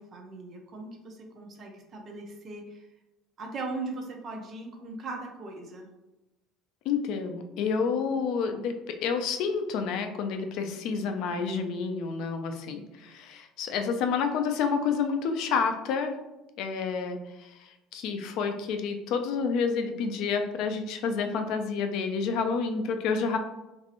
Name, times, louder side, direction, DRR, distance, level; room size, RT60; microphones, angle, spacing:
voice 1, 0.0-2.9 3.4-5.9, right 3 dB, 30° right, 2 dB, 0.5 m, -39 dB
voice 2, 6.9-16.1 16.6-23.4, left 5 dB, 60° left, 6 dB, 0.3 m, -29 dB
3.0 x 2.6 x 2.8 m, 0.95 s
cardioid pair, 160°, 0 cm